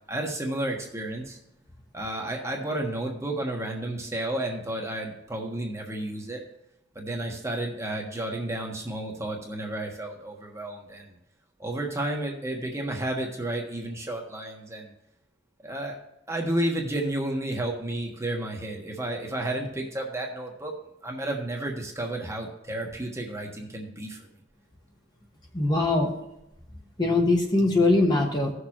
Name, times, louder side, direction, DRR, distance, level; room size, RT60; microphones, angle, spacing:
voice 1, 0.1-1.4 1.9-6.4 6.9-11.2 11.6-14.9 15.6-16.0 16.3-20.7 21.0-24.3, right 1 dB, 15° right, 0 dB, 1.3 m, -32 dB
voice 2, 25.5-26.1 27.0-28.5, left 2 dB, 25° left, 1 dB, 1.1 m, -22 dB
16.5 x 6.5 x 3.0 m, 0.85 s
head